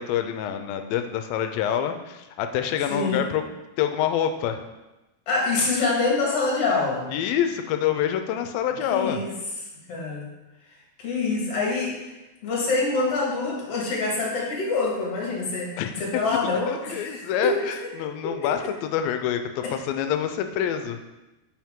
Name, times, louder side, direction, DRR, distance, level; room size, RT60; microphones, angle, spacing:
voice 1, 0.0-3.4 3.8-4.6 7.1-9.2 15.8-15.9 16.7-21.0, left 9 dB, 85° left, 7 dB, 2.3 m, -26 dB
voice 2, 2.9-3.2 5.3-7.0 8.9-9.3 9.9-10.3 11.0-12.1 12.4-15.7 16.0-18.7, left 3 dB, 50° left, -3 dB, 2.3 m, -26 dB
7.4 x 5.9 x 3.6 m, 1.0 s
omnidirectional pair, 4.2 m